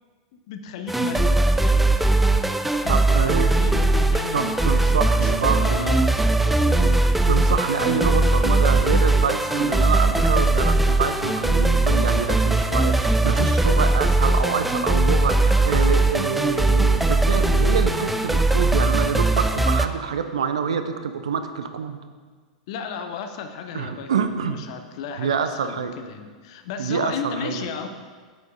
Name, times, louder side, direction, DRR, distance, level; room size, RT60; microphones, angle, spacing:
voice 1, 0.3-1.7 2.8-6.1 7.2-7.5 22.7-27.9, left 6 dB, 50° left, 7 dB, 0.7 m, -34 dB
sound 1, 0.9-19.9, right 2 dB, 5° right, 0.3 m, -20 dB
voice 2, 2.9-3.5 4.3-5.9 6.7-22.0 23.7-24.6 25.2-25.9 26.8-27.6, right 6 dB, 65° right, 9 dB, 0.5 m, -26 dB
8.6 x 6.4 x 3.8 m, 1.5 s
figure-of-eight pair, 90°, 4 cm